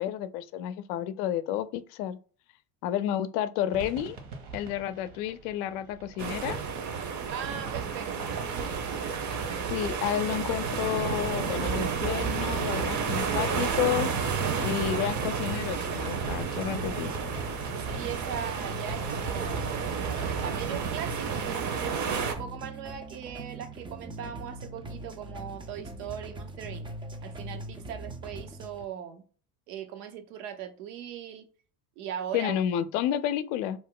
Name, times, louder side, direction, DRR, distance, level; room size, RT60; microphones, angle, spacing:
voice 1, 0.0-2.2 2.8-4.2 4.5-6.6 9.7-14.1 14.6-17.1 32.3-33.8, left 11 dB, 65° left, 0.5 m, -30 dB
sound 1, 3.7-20.9, right 4 dB, 60° right, 1.1 m, -42 dB
sound 2, 6.2-22.3, right 6 dB, 40° right, 0.7 m, -31 dB
voice 2, 7.3-8.3 17.8-19.9 20.4-26.9 27.2-29.2 29.7-31.5 32.0-32.6, right 9 dB, 75° right, 0.8 m, -39 dB
sound 3, 12.9-28.8, right 1 dB, 10° right, 0.3 m, -41 dB
2.6 x 2.1 x 3.7 m
hypercardioid pair, 80°, 45 cm